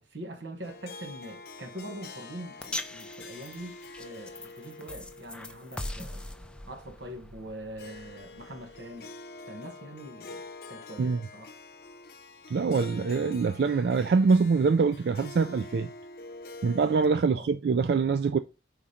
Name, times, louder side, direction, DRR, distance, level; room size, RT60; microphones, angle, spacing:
voice 1, 0.0-3.7 4.0-6.3 6.7-9.1 9.5-11.5 17.2-17.5, right 1 dB, 90° right, 1.1 m, -43 dB
Harp, 0.6-17.1, left 3 dB, 55° left, 0.6 m, -46 dB
sound 1, 2.6-9.0, left 1 dB, 5° left, 0.4 m, -42 dB
voice 2, 12.5-15.9 16.6-18.4, right 4 dB, 65° right, 0.3 m, -24 dB
5.0 x 4.3 x 4.9 m
head